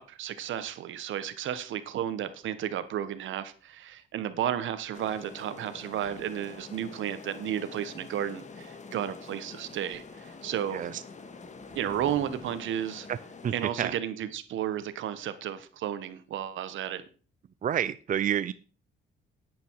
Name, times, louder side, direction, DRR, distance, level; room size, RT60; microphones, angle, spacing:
voice 1, 0.0-10.8 11.7-13.1 13.5-17.0, right 10 dB, 75° right, 1.3 m, -33 dB
sound 1, 4.9-13.7, left 4 dB, 35° left, 1.8 m, -46 dB
sound 2, 10.8-13.5, equal, 20° left, 6.0 m, -51 dB
voice 2, 13.4-14.0 17.6-18.5, right 9 dB, 40° right, 0.5 m, -29 dB
10.5 x 9.6 x 4.7 m
cardioid pair, 90°, 20 cm